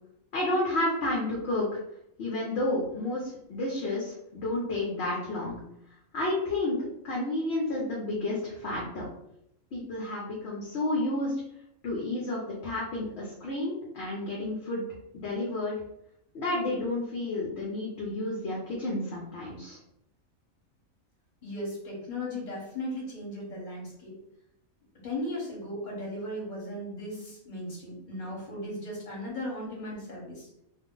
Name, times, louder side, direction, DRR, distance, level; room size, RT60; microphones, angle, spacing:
voice 1, 0.3-1.7 2.2-5.6 6.1-6.8 7.0-9.0 9.7-11.3 11.8-14.8 15.2-15.7 16.3-19.8, left 2 dB, 60° left, -4 dB, 0.9 m, -31 dB
voice 2, 21.4-24.1 25.0-30.5, left 1 dB, 35° left, -4 dB, 1.1 m, -37 dB
2.6 x 2.0 x 3.6 m, 0.77 s
omnidirectional pair, 1.4 m